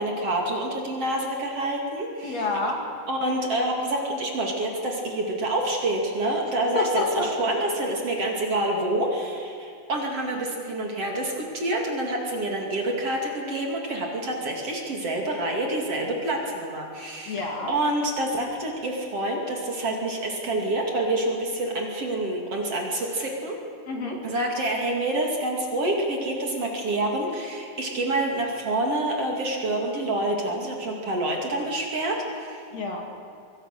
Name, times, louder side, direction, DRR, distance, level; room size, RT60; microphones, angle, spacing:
voice 1, 0.0-2.5 3.1-23.6 24.2-32.6, right 1 dB, 45° right, 1 dB, 3.2 m, -27 dB
voice 2, 2.2-2.8 6.7-7.5 17.3-17.7 23.9-24.2 32.7-33.0, left 3 dB, 50° left, 1 dB, 3.5 m, -28 dB
25.5 x 21.5 x 6.7 m, 2.4 s
omnidirectional pair, 4.1 m